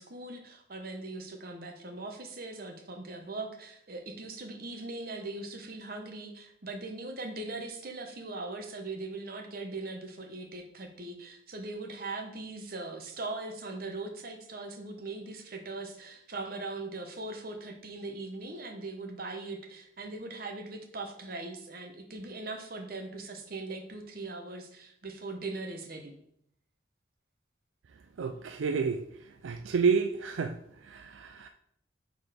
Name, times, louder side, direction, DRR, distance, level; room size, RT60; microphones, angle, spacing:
voice 1, 0.0-26.2, right 2 dB, 50° right, 3 dB, 1.0 m, -40 dB
voice 2, 28.2-29.0 29.4-30.6 30.9-31.5, right 5 dB, 80° right, 7 dB, 0.4 m, -29 dB
6.7 x 4.0 x 5.0 m, 0.72 s
head